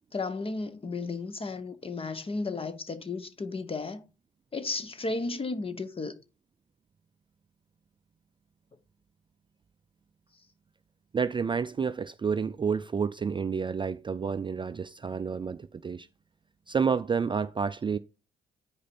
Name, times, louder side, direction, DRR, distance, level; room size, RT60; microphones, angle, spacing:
voice 1, 0.1-4.0 4.5-6.2, left 3 dB, 30° left, 1.0 m, -34 dB
voice 2, 11.1-16.1 16.7-18.0, right 6 dB, 25° right, 0.4 m, -29 dB
8.9 x 5.0 x 4.2 m
cardioid pair, 90°, 20 cm